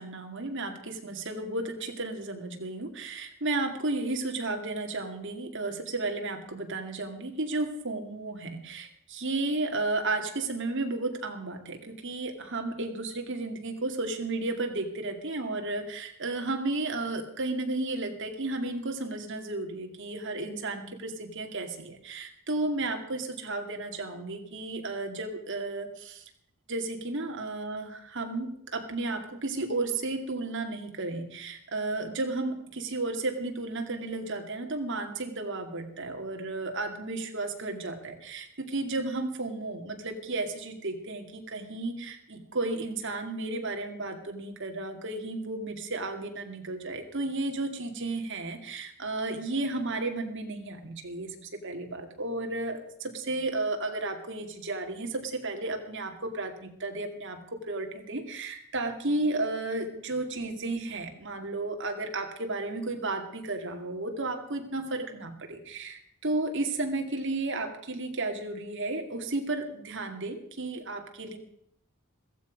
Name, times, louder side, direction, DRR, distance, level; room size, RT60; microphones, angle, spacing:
voice 1, 0.0-26.2 26.7-71.4, right 2 dB, 60° right, 4 dB, 2.4 m, -33 dB
15.5 x 14.5 x 5.2 m, 0.70 s
head